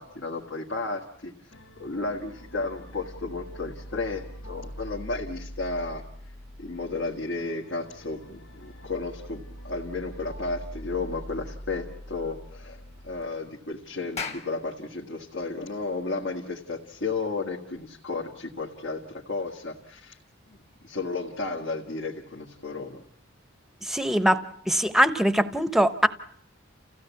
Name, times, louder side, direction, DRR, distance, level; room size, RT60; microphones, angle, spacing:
voice 1, 0.0-6.0 6.6-20.2 20.5-23.0, left 3 dB, 70° left, -1 dB, 1.8 m, -33 dB
sound 1, 1.5-13.2, equal, 85° left, 1.3 m, -43 dB
Clapping, 14.2-18.8, left 5 dB, 35° left, 1.6 m, -42 dB
voice 2, 23.8-26.1, equal, ahead, 13 dB, 0.9 m, -22 dB
29.0 x 16.0 x 8.3 m, 0.71 s
head